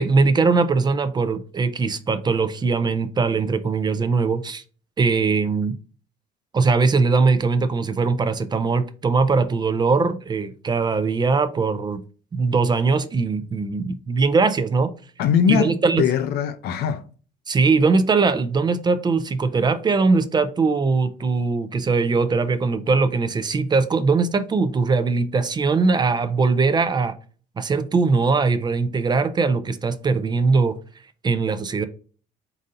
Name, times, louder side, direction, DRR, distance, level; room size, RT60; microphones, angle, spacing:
voice 1, 0.0-4.6 5.0-5.7 6.5-12.0 12.3-14.9 15.5-16.0 17.5-27.1 27.6-30.8 31.2-31.9, right 4 dB, 25° right, 0.4 m, -21 dB
voice 2, 15.2-17.0, left 8 dB, 75° left, 0.5 m, -21 dB
4.0 x 2.6 x 3.7 m
cardioid pair, 110°, 17 cm